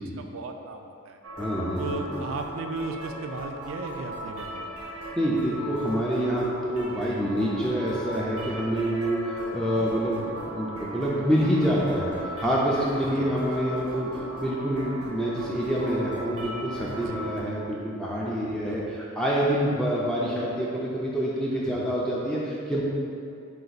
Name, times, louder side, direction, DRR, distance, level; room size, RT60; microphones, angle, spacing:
voice 1, 0.0-1.2 1.8-4.7 9.3-9.5 13.0-13.3 17.0-17.4 18.4-19.0 21.6-22.0, right 3 dB, 65° right, 5 dB, 0.3 m, -37 dB
sound 1, 1.2-17.4, equal, 80° right, 0.7 m, -38 dB
voice 2, 1.4-2.2 5.1-22.8, equal, 5° left, -6 dB, 0.4 m, -27 dB
5.1 x 2.5 x 3.9 m, 2.5 s
head